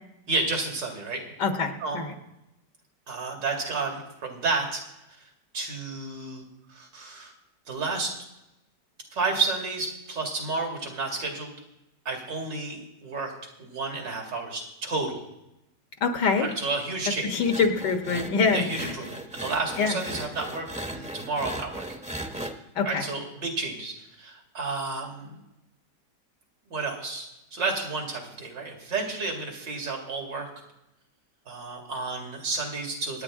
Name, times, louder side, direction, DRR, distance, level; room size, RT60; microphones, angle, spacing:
voice 1, 0.3-1.2 1.8-2.0 3.1-4.8 5.2-5.3 5.5-7.3 7.7-8.1 9.1-11.5 12.0-13.3 13.6-15.2 16.4-17.3 18.5-21.8 22.8-25.4 26.7-30.5 31.5-33.2, right 3 dB, 85° right, 1 dB, 3.1 m, -31 dB
voice 2, 1.4-2.1 16.0-16.5 17.2-18.9 19.8-20.0 22.8-23.0, left 5 dB, 75° left, 5 dB, 2.0 m, -25 dB
sound 1, 17.4-22.5, right 1 dB, 5° right, 0.6 m, -37 dB
26.5 x 9.5 x 3.7 m, 0.90 s
omnidirectional pair, 1.9 m